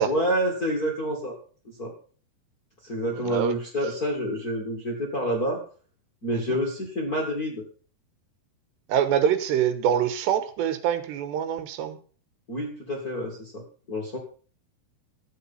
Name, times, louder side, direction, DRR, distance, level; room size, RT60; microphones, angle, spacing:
voice 1, 0.0-1.4 1.6-1.9 2.8-5.6 6.2-7.6 12.5-14.2, equal, 30° left, -1 dB, 1.8 m, -28 dB
voice 2, 3.2-3.5 6.3-6.6 8.9-12.0, right 9 dB, 80° right, 11 dB, 3.3 m, -25 dB
13.5 x 8.4 x 5.7 m, 0.40 s
omnidirectional pair, 5.0 m